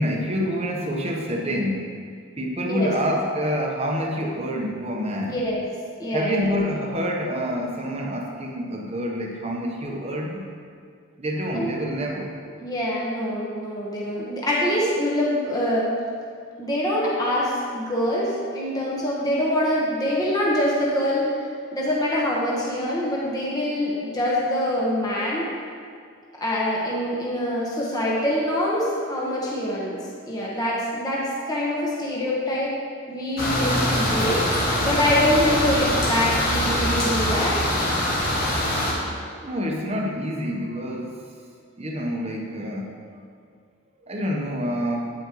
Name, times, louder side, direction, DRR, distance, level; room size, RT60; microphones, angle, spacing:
voice 1, 0.0-1.9 2.4-5.4 6.1-10.5 11.2-12.4 39.4-41.2 41.8-42.9 44.1-45.1, equal, 30° right, 0 dB, 0.9 m, -27 dB
voice 2, 5.3-5.6 6.0-6.4 11.5-11.7 12.6-15.9 16.6-21.3 21.7-25.4 26.4-30.0 30.3-32.7 33.1-37.6, left 1 dB, 20° left, -5 dB, 1.1 m, -24 dB
sound 1, 33.4-38.9, left 1 dB, 45° left, 1.7 m, -23 dB
9.1 x 9.0 x 3.0 m, 2.2 s
head